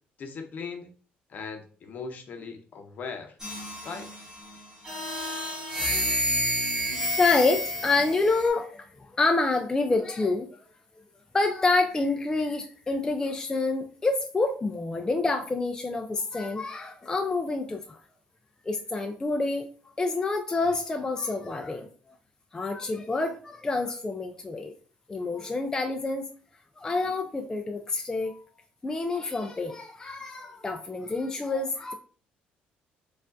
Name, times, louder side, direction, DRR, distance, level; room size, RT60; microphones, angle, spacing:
voice 1, 0.2-0.9 1.3-3.3 3.8-4.1, left 5 dB, 50° left, 6 dB, 0.7 m, -38 dB
sound 1, 3.4-4.3 4.8-8.5, equal, 15° right, 1.7 m, -29 dB
voice 2, 7.2-10.6 11.3-18.0 18.7-19.7 20.0-21.9 22.5-24.7 25.1-26.2 26.8-28.4 28.8-31.9, left 3 dB, 20° left, 4 dB, 0.4 m, -27 dB
4.5 x 2.4 x 2.5 m, 0.41 s
cardioid pair, 100°, 4 cm